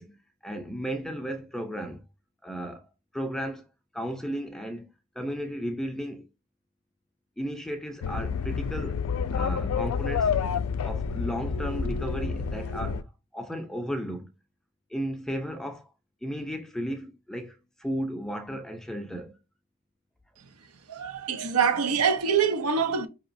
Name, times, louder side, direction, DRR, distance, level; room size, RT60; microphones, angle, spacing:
voice 1, 0.0-2.0 2.4-2.9 3.1-3.6 3.9-4.9 5.2-6.3 7.4-9.0 9.3-10.3 10.8-13.0 13.3-14.3 14.9-15.9 16.2-19.4, equal, ahead, 0.4 m, -34 dB
sound 1, 8.0-13.0, left 6 dB, 75° left, 0.3 m, -29 dB
voice 2, 20.9-23.1, right 6 dB, 85° right, 0.6 m, -25 dB
4.9 x 2.9 x 2.6 m
head